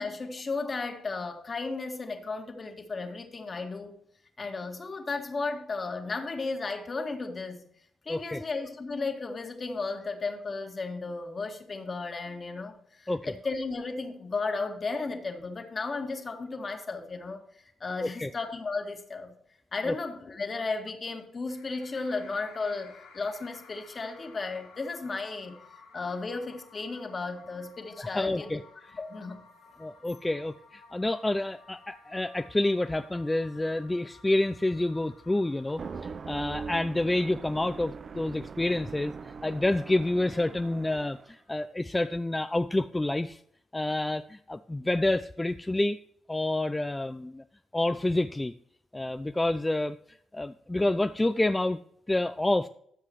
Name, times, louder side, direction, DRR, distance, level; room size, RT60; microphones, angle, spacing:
voice 1, 0.0-4.0 4.4-7.7 8.1-17.4 17.8-19.4 19.7-25.6 25.9-28.6 29.0-29.4, left 3 dB, 45° left, 5 dB, 1.9 m, -34 dB
voice 2, 8.1-8.4 13.1-13.3 18.0-18.3 19.8-19.9 28.0-28.6 28.9-29.0 29.8-43.4 43.7-46.0 46.3-47.4 47.7-48.5 48.9-51.8 52.1-52.7, left 2 dB, 20° left, 10 dB, 0.4 m, -28 dB
sound 1, 21.5-36.0, left 4 dB, 80° left, 1.4 m, -55 dB
sound 2, 35.7-41.3, right 5 dB, 50° right, 0.5 m, -41 dB
13.5 x 7.5 x 3.1 m, 0.67 s
hypercardioid pair, 40°, 0 cm